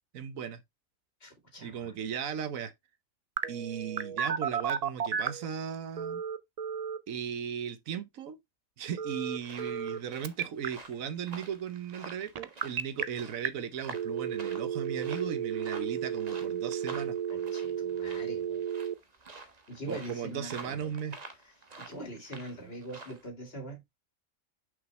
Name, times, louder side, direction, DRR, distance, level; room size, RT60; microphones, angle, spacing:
voice 1, 0.1-0.6 1.6-2.7 3.5-6.2 7.1-8.4 8.8-17.2 19.9-21.2, right 8 dB, 80° right, 1.2 m, -37 dB
voice 2, 1.2-2.0 17.3-18.6 19.7-20.9 21.8-23.8, right 1 dB, 45° left, 2.4 m, -43 dB
Telephone, 3.4-5.5 6.0-7.0 9.0-10.0 10.2-10.7 12.4-13.0 13.5-13.6 13.9-18.9, right 8 dB, 60° right, 0.4 m, -33 dB
sound 1, 9.4-23.3, right 3 dB, 35° right, 1.1 m, -49 dB
6.1 x 5.5 x 3.2 m
omnidirectional pair, 1.4 m